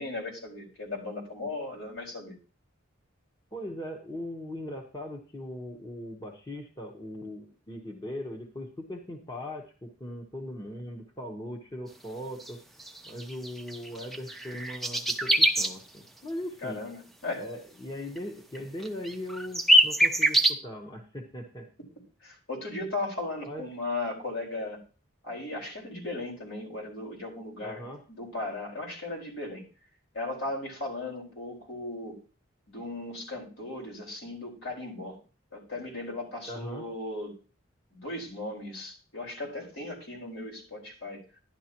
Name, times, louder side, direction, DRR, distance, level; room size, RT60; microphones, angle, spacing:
voice 1, 0.0-2.4 16.6-17.4 22.2-24.8 25.2-27.8 28.1-29.6 30.1-32.2 32.7-35.2 35.5-37.4 37.9-41.2, left 2 dB, 70° left, -2 dB, 4.5 m, -37 dB
voice 2, 3.5-12.6 13.1-16.8 17.4-21.7 23.4-23.6 27.6-28.0 36.5-36.9, left 1 dB, 20° left, 1 dB, 1.0 m, -39 dB
sound 1, 12.4-12.5 12.8-15.7 18.2-18.3 18.5-18.6 18.8-20.5, right 1 dB, ahead, 0.5 m, -24 dB
11.0 x 11.0 x 2.9 m, 0.35 s
head